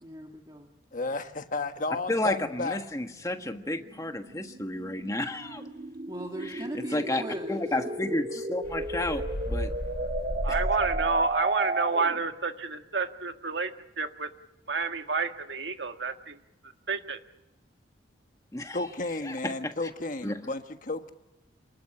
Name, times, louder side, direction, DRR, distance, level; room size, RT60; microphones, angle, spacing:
voice 1, 0.0-0.7 6.1-7.7, right 1 dB, 25° right, 2 dB, 1.8 m, -39 dB
voice 2, 0.9-2.8 18.7-21.1, left 3 dB, 45° left, 7 dB, 1.4 m, -33 dB
sound 1, 1.1-12.3, right 2 dB, 45° right, 1.8 m, -35 dB
voice 3, 2.1-5.6 6.4-9.7 18.5-18.8 19.2-19.7 20.2-20.5, left 1 dB, 15° left, 6 dB, 1.4 m, -32 dB
sound 2, 8.6-11.4, equal, 75° left, 4.7 m, -34 dB
voice 4, 10.4-14.3 14.7-16.4 16.9-17.2, right 4 dB, 70° right, 7 dB, 1.6 m, -30 dB
28.0 x 20.0 x 9.9 m, 0.95 s
head